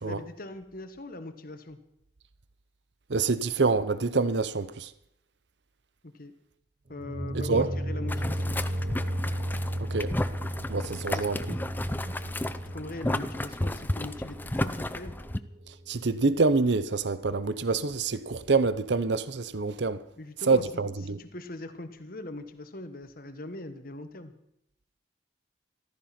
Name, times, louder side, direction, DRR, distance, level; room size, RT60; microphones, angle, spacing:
voice 1, 0.0-1.8 6.0-6.3 6.9-8.6 11.1-11.3 12.1-12.2 12.7-15.2 20.2-24.3, left 2 dB, 50° left, 1.4 m, -41 dB
voice 2, 3.1-4.9 7.5-7.7 9.9-10.1 10.7-11.6 15.7-20.0 20.5-21.2, right 4 dB, 65° right, 0.7 m, -26 dB
sound 1, 6.9-15.8, equal, 45° right, 1.7 m, -34 dB
Boiling, 8.1-15.4, left 1 dB, 10° left, 0.5 m, -33 dB
14.5 x 14.0 x 6.0 m
head